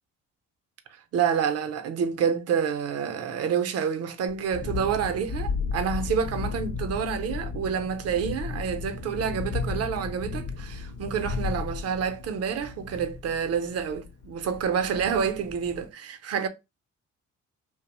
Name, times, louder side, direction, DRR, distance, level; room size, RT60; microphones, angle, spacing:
voice 1, 1.1-16.5, right 7 dB, 55° right, 0.6 m, -28 dB
Thunderstorm, 4.3-15.9, left 4 dB, 50° left, 0.7 m, -34 dB
2.7 x 2.1 x 2.9 m
cardioid pair, 90°, 30 cm